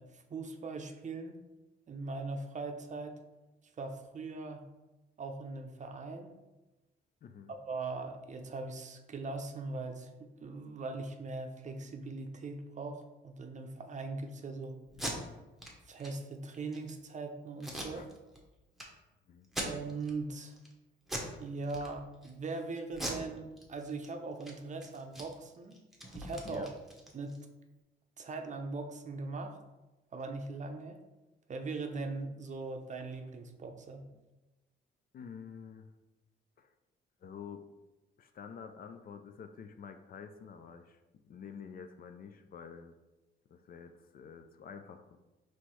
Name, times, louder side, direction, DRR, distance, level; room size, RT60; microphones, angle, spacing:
voice 1, 0.0-1.4 1.9-3.2 3.8-4.6 5.2-6.3 7.7-14.8 15.9-18.1 19.6-20.5 21.4-25.8 26.1-26.7 27.1-27.4 28.2-29.6 30.1-31.0 31.5-34.0, right 3 dB, 40° right, 4 dB, 0.6 m, -40 dB
voice 2, 7.2-7.5 17.9-18.1 19.3-19.5 26.4-26.7 35.1-35.9 36.6-36.7 37.2-37.6 38.2-41.0 41.2-42.9 43.5-45.2, left 6 dB, 45° left, 8 dB, 0.4 m, -48 dB
Packing tape duct tape, 14.9-15.1 15.6-15.7 16.0-16.1 16.5-16.9 17.6-18.4 18.8-18.9 19.4-20.1 20.5-20.7 21.0-21.3 21.7-22.3 22.9-24.1 24.3-24.5 24.8-27.4, right 1 dB, ahead, 0.9 m, -41 dB
4.4 x 3.1 x 3.1 m, 1.1 s
cardioid pair, 90°, 20 cm